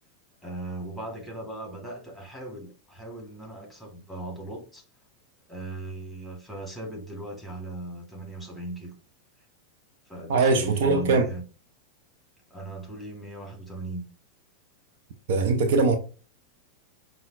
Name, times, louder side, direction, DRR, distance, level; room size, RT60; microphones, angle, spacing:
voice 1, 0.4-4.8 5.5-8.9 10.1-11.4 12.5-14.1, right 2 dB, 5° left, 1.4 m, -38 dB
voice 2, 10.3-11.2 15.3-16.0, right 4 dB, 55° right, 0.4 m, -21 dB
5.5 x 2.1 x 2.4 m
figure-of-eight pair, 90°, 0 cm